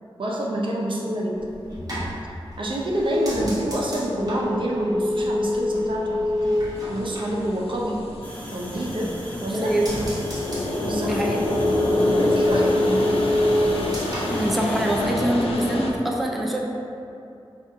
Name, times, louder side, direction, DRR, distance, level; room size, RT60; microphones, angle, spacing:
voice 1, 0.2-1.4 2.6-6.5 6.9-8.0 8.5-9.1 9.4-9.7 10.8-11.1 12.1-13.3, right 1 dB, 60° right, -3 dB, 0.5 m, -27 dB
sound 1, 1.4-8.2 8.5-9.2 9.5-15.2 15.5-16.0, left 1 dB, 40° right, 1.0 m, -26 dB
sound 2, 6.7-15.9, left 1 dB, 90° left, 0.4 m, -28 dB
sound 3, 8.2-15.0, equal, 15° left, 0.8 m, -40 dB
voice 2, 9.5-10.0 11.1-11.4 14.3-16.7, right 1 dB, ahead, -1 dB, 0.3 m, -24 dB
4.8 x 2.4 x 2.6 m, 2.7 s
wide cardioid pair, 70°, 10 cm